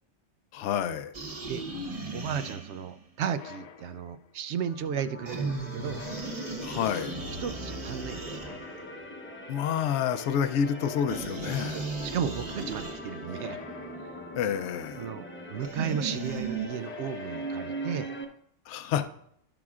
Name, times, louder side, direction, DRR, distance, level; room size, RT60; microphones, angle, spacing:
voice 1, 0.5-1.1 6.6-7.1 9.5-11.9 14.3-15.1 18.7-19.1, left 8 dB, 70° left, 12 dB, 0.9 m, -29 dB
sound 1, 1.1-3.0 5.3-9.0 11.1-13.4 15.6-16.7, right 3 dB, 30° right, 0.9 m, -36 dB
voice 2, 2.1-6.0 7.4-8.6 11.7-13.6 15.0-18.1, right 8 dB, 70° right, 12 dB, 0.8 m, -34 dB
sound 2, 3.2-4.4 5.8-7.0 8.3-9.3 10.6-11.8 13.3-14.6 16.7-17.9, left 6 dB, 90° left, 0.3 m, -47 dB
sound 3, 4.5-18.2, right 1 dB, 10° left, 0.7 m, -41 dB
15.5 x 6.1 x 2.4 m, 0.71 s
omnidirectional pair, 1.3 m